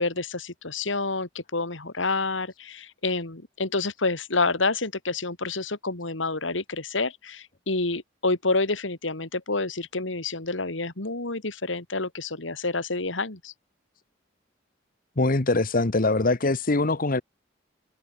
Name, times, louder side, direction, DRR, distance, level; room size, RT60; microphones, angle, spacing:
voice 1, 0.0-13.5, left 3 dB, 85° left, 2.7 m, -28 dB
voice 2, 15.2-17.2, left 2 dB, 50° left, 1.2 m, -23 dB
head